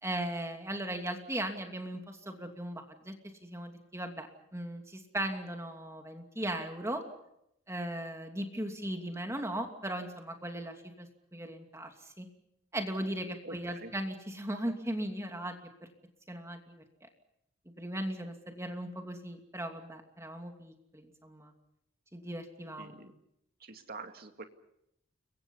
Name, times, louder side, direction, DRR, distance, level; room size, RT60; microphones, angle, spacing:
voice 1, 0.0-3.1 3.4-4.3 4.5-7.0 7.7-12.3 12.7-15.9 16.3-16.8 17.8-21.5 22.1-22.9, right 1 dB, 15° right, 4 dB, 2.7 m, -38 dB
voice 2, 13.4-13.9 22.8-23.1 23.6-24.4, right 3 dB, 45° right, 6 dB, 2.3 m, -45 dB
30.0 x 23.5 x 5.6 m, 0.79 s
head